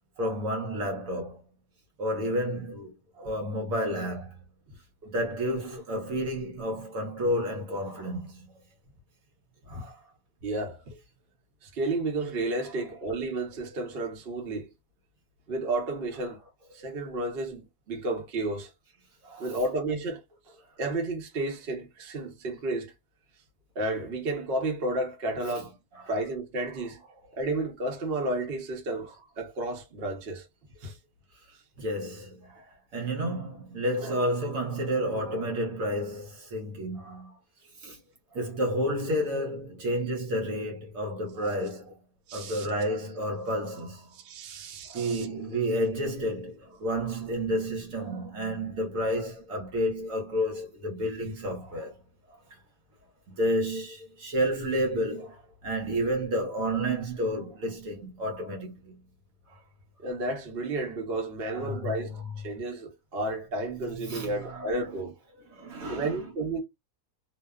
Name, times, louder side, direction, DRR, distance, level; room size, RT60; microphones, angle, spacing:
voice 1, 0.2-1.4 2.0-4.4 5.0-8.5 9.7-10.1 12.6-12.7 19.2-19.6 25.5-25.6 25.9-26.1 31.8-37.3 37.8-38.0 38.3-42.0 42.3-44.1 44.8-52.0 52.3-52.6 53.3-59.0 59.5-59.6 61.4-62.2 64.0-65.0 65.5-66.3, equal, 65° right, 1.0 m, -31 dB
voice 2, 10.4-11.0 11.6-14.7 15.5-16.4 16.7-18.7 19.4-22.9 23.8-25.7 26.1-27.0 27.3-30.5 30.8-31.0 34.0-34.1 42.3-42.7 44.1-45.3 60.0-65.1 65.9-66.6, right 2 dB, 50° right, 0.9 m, -32 dB
2.7 x 2.0 x 2.2 m
omnidirectional pair, 1.7 m